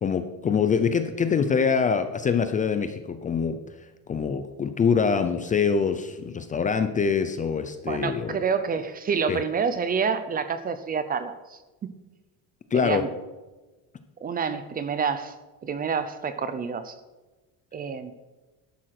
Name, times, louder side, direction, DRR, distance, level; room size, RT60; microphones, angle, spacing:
voice 1, 0.0-3.6 4.1-8.4 9.3-9.4 12.7-13.0, left 6 dB, 20° left, 9 dB, 0.6 m, -24 dB
voice 2, 7.9-11.9 12.7-13.1 14.2-15.3 15.6-17.0 17.7-18.1, right 6 dB, 20° right, 12 dB, 0.7 m, -28 dB
12.5 x 11.5 x 5.9 m, 1.1 s
cardioid pair, 170°, 39 cm